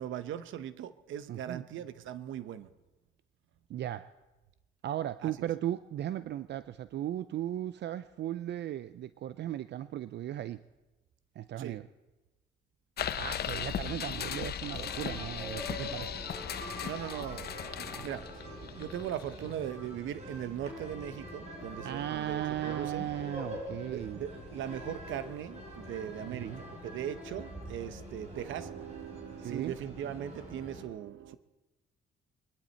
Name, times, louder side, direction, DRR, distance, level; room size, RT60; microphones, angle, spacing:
voice 1, 0.0-2.7 5.2-5.5 11.6-11.8 16.8-23.1 23.9-31.4, right 10 dB, 80° right, 13 dB, 0.8 m, -39 dB
voice 2, 1.3-1.6 3.7-4.1 4.8-10.6 11.4-11.9 13.2-16.2 21.8-24.2 26.2-26.6 29.4-29.7, right 12 dB, 60° right, 14 dB, 0.5 m, -36 dB
sound 1, 13.0-19.5, left 9 dB, 55° left, 0.7 m, -37 dB
sound 2, 14.6-30.8, equal, 35° right, 4.3 m, -44 dB
23.5 x 11.5 x 4.4 m, 1.1 s
cardioid pair, 90°, 20 cm